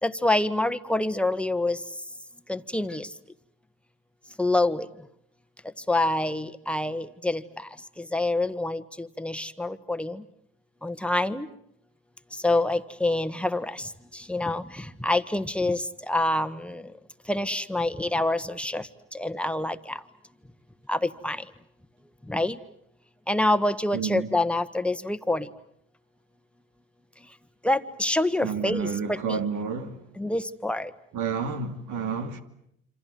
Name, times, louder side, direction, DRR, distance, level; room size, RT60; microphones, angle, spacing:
voice 1, 0.0-1.8 2.5-3.1 4.4-4.9 5.9-7.4 8.1-10.2 10.8-11.5 12.4-13.9 14.3-16.8 17.3-18.9 19.1-20.0 20.9-21.4 22.3-22.6 23.3-25.5 27.6-29.4 30.2-30.9, left 2 dB, 5° left, 1.6 m, -26 dB
voice 2, 23.9-24.3 28.4-30.0 31.1-32.4, right 6 dB, 65° right, 2.6 m, -30 dB
27.5 x 26.0 x 7.7 m
hypercardioid pair, 60°, 32 cm